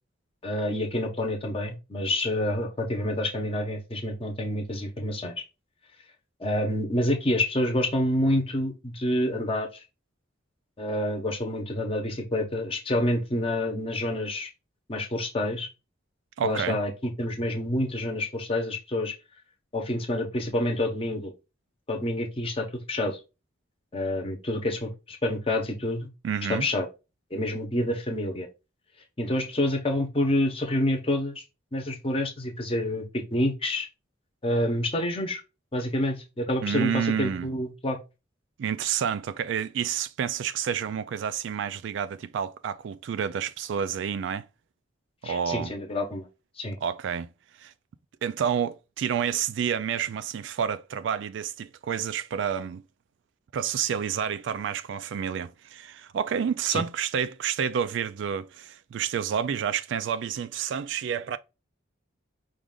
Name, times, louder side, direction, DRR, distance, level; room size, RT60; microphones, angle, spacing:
voice 1, 0.4-5.3 6.4-9.8 10.8-14.5 14.9-15.7 16.4-19.1 19.7-21.3 21.9-23.2 23.9-26.1 26.5-26.9 27.3-28.5 29.2-31.4 31.7-33.9 34.4-35.4 35.7-38.0 45.2-46.3 46.6-46.8 56.7-56.8, left 1 dB, 30° left, 0.9 m, -28 dB
voice 2, 16.4-16.8 26.2-26.7 36.6-37.5 38.6-44.5 45.2-45.7 46.8-47.3 47.6-47.7 48.2-52.8 53.5-61.4, right 8 dB, 65° right, 0.3 m, -29 dB
4.9 x 2.5 x 3.6 m
head